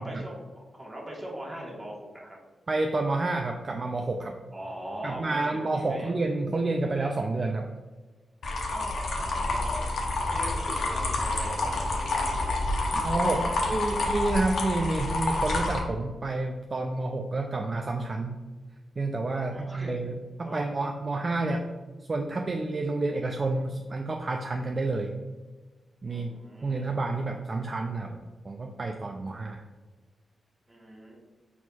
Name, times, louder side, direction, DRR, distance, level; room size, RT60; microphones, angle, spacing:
voice 1, 0.0-2.4 4.5-6.2 8.7-9.9 10.3-14.1 19.3-19.9 20.4-20.7 26.1-27.0 30.7-31.2, right 1 dB, 20° right, -3 dB, 1.3 m, -41 dB
voice 2, 2.7-4.3 5.0-7.7 12.9-13.4 13.7-18.4 19.0-21.7 22.1-25.1 26.0-26.3 26.6-28.2 28.4-29.6, right 2 dB, 40° right, 3 dB, 0.3 m, -29 dB
sound 1, 8.4-15.8, left 2 dB, 70° left, 0.8 m, -28 dB
4.4 x 4.1 x 2.3 m, 1.3 s
cardioid pair, 75°, 0 cm